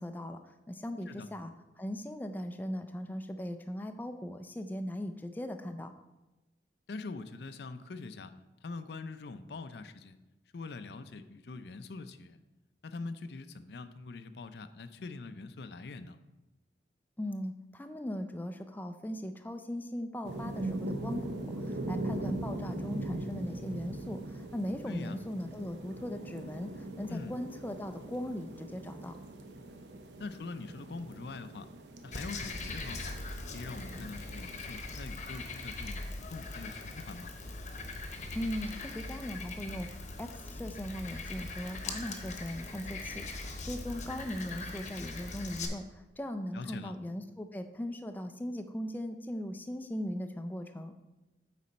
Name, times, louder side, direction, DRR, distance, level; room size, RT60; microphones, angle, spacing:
voice 1, 0.0-1.5 1.8-5.9 17.2-29.2 38.3-39.9 40.2-50.9, left 1 dB, 10° left, 7 dB, 0.3 m, -39 dB
voice 2, 6.9-8.3 8.6-10.2 10.5-12.4 12.8-16.2 24.9-25.2 27.1-27.3 30.2-31.7 32.0-33.1 33.5-37.3 46.5-46.9, left 3 dB, 65° left, 11 dB, 0.5 m, -43 dB
sound 1, 20.2-34.6, right 1 dB, 80° right, 0.8 m, -41 dB
Frog, 32.1-45.7, left 3 dB, 40° left, 0.9 m, -41 dB
8.5 x 4.1 x 5.2 m, 1.0 s
head